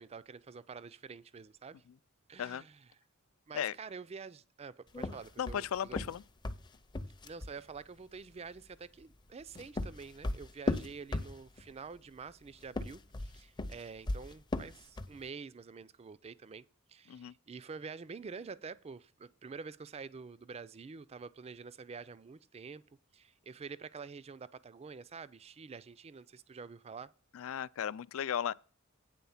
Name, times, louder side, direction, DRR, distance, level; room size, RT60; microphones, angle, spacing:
voice 1, 0.0-1.8 2.3-2.9 3.5-6.0 7.2-22.8 23.1-27.1, right 5 dB, 30° right, 0.4 m, -47 dB
sound 1, 4.9-7.6 9.3-11.7 12.6-15.2, left 2 dB, 20° left, 0.6 m, -37 dB
voice 2, 5.4-6.2 17.1-17.3 27.3-28.5, left 9 dB, 70° left, 0.3 m, -36 dB
9.2 x 4.0 x 7.0 m
head